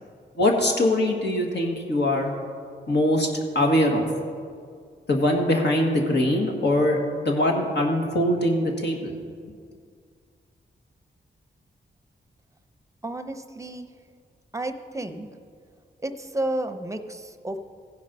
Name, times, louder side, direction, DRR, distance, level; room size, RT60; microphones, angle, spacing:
voice 1, 0.4-2.3 2.9-3.3 3.6-4.1 5.1-9.2, left 1 dB, 65° left, 1 dB, 1.7 m, -22 dB
voice 2, 13.0-13.9 14.5-15.3 16.0-17.6, right 1 dB, 15° right, 8 dB, 0.7 m, -31 dB
15.5 x 5.3 x 5.4 m, 2.1 s
cardioid pair, 60°, 20 cm